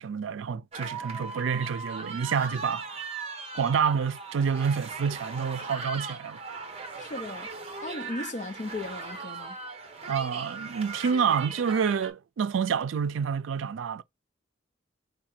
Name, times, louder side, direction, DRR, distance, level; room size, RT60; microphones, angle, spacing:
voice 1, 0.0-2.9 3.5-6.4 10.1-14.0, right 6 dB, 85° right, 0.4 m, -28 dB
sound 1, 0.7-12.1, right 4 dB, 30° right, 0.9 m, -39 dB
voice 2, 7.0-7.5 7.8-9.6, left 2 dB, 40° left, 0.8 m, -36 dB
4.8 x 2.2 x 4.3 m
head